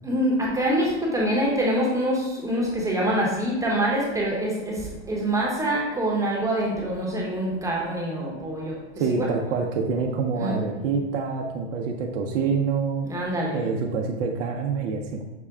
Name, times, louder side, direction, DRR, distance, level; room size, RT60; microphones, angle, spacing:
voice 1, 0.0-8.8 9.1-9.3 10.3-10.7 13.0-13.6, right 1 dB, 10° right, -4 dB, 0.8 m, -25 dB
voice 2, 9.0-13.1 13.5-15.2, right 5 dB, 75° right, 1 dB, 0.6 m, -26 dB
5.9 x 2.1 x 3.5 m, 1.1 s
hypercardioid pair, 120°, 36 cm